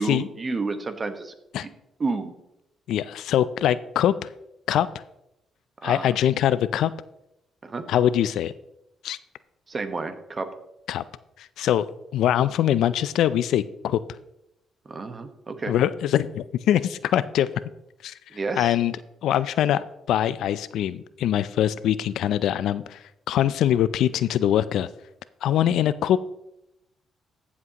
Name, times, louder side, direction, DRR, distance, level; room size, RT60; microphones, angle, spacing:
voice 1, 0.0-1.3 1.6-1.7 2.0-2.3 5.8-6.1 7.6-7.8 9.7-10.5 14.8-15.7 18.3-18.8, right 3 dB, 35° right, 9 dB, 1.1 m, -30 dB
voice 2, 2.9-4.3 4.7-4.9 5.8-6.9 7.9-8.5 9.0-9.2 10.9-11.0 11.4-11.8 12.1-14.0 15.7-17.5 18.0-18.1 18.6-19.0 19.2-23.0 23.3-24.9 25.4-26.2, left 11 dB, 80° left, 16 dB, 0.3 m, -23 dB
14.0 x 7.3 x 2.9 m, 0.85 s
cardioid pair, 90°, 0 cm